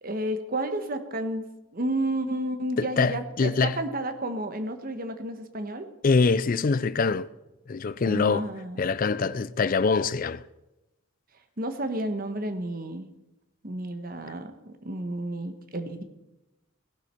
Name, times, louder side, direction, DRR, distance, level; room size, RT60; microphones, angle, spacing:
voice 1, 0.0-5.9 8.0-8.8 11.6-13.1 13.6-16.0, right 1 dB, 45° right, 1.2 m, -31 dB
voice 2, 2.8-3.8 6.0-7.3 7.7-8.5 8.8-10.4, left 4 dB, 40° left, 0.4 m, -24 dB
18.5 x 11.5 x 4.5 m
head